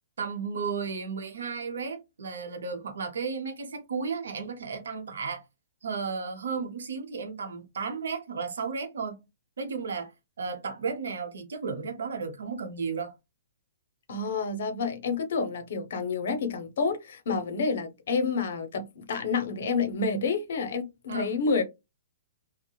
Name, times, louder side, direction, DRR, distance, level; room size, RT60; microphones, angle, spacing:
voice 1, 0.2-5.4 5.8-9.2 9.6-10.1 10.4-13.1 21.1-21.4, right 5 dB, 80° right, 0.8 m, -34 dB
voice 2, 14.1-21.6, left 4 dB, 65° left, 0.6 m, -29 dB
2.8 x 2.0 x 2.2 m
hypercardioid pair, 145°, 0 cm